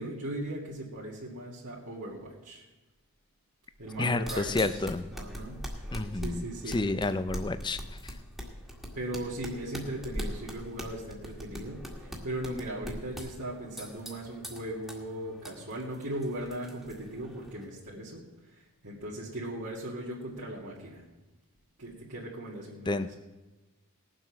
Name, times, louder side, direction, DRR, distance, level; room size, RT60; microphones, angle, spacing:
voice 1, 0.0-2.6 3.8-4.8 5.1-5.6 5.9-6.8 8.9-18.2 18.5-21.0 21.8-23.1, right 1 dB, 70° right, -7 dB, 2.3 m, -38 dB
sound 1, 3.9-17.6, equal, ahead, 1.9 m, -42 dB
voice 2, 4.0-5.0 5.9-7.8 8.0-8.1 22.9-23.1, left 2 dB, 20° left, 11 dB, 0.5 m, -30 dB
19.0 x 7.6 x 5.9 m, 1.1 s
head